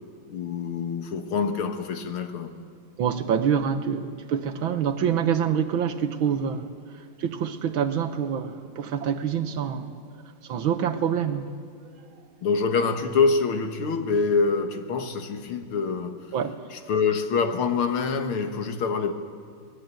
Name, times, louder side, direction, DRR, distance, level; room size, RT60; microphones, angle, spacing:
voice 1, 0.3-2.5 12.4-16.3 16.7-19.1, left 5 dB, 85° left, 2.3 m, -25 dB
voice 2, 3.0-6.7 7.2-9.9 10.5-11.5 16.3-16.6, right 8 dB, 75° right, 1.8 m, -26 dB
25.0 x 19.5 x 9.0 m
omnidirectional pair, 2.3 m